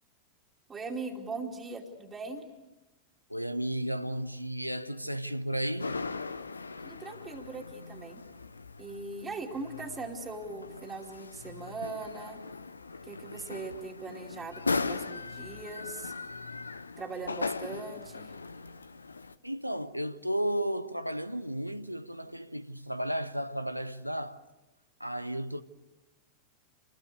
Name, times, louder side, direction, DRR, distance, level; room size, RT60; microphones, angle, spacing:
voice 1, 0.7-2.5 6.8-8.2 8.8-12.4 13.0-16.1 17.0-18.4, right 3 dB, 20° right, 2.6 m, -40 dB
voice 2, 3.3-6.0 19.4-24.4 25.0-25.6, right 1 dB, 90° right, 0.8 m, -33 dB
sound 1, 5.8-19.4, left 4 dB, 80° left, 0.8 m, -39 dB
27.5 x 20.5 x 8.3 m
figure-of-eight pair, 90°, 0 cm